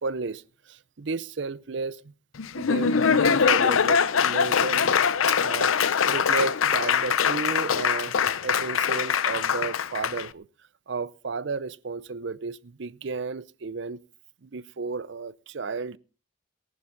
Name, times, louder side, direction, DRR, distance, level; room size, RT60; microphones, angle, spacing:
voice 1, 0.0-2.1 2.6-5.0 5.3-8.2 8.4-10.5 10.9-14.0 14.4-16.0, right 4 dB, 60° right, 0.6 m, -33 dB
Laughter / Applause, 2.4-10.3, left 7 dB, 90° left, 0.6 m, -23 dB
19.0 x 11.0 x 3.9 m
head